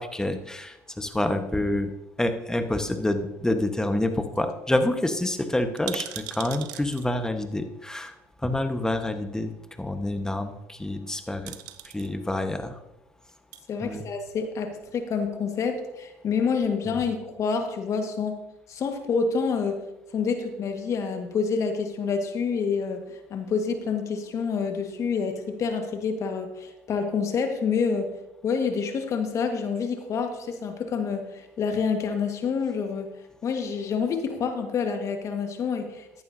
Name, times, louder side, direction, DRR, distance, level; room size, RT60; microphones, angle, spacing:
voice 1, 0.0-1.9 2.2-8.1 8.4-9.5 9.8-11.5 11.9-12.8 13.8-14.0 16.9-17.0, left 1 dB, 10° left, 7 dB, 1.3 m, -27 dB
sound 1, 3.0-3.7 4.1-4.2 4.3-4.5 4.8-4.9 5.6-7.1 8.2-8.3 10.9-11.1 11.5-12.1 13.2-13.6 14.3-15.0 15.2-15.3, right 14 dB, 70° right, 0.8 m, -40 dB
voice 2, 13.7-18.4 18.7-19.8 20.1-28.1 28.4-33.1 33.4-36.2, left 5 dB, 50° left, 5 dB, 1.6 m, -28 dB
14.0 x 11.0 x 2.8 m, 0.92 s
hypercardioid pair, 70°, 7 cm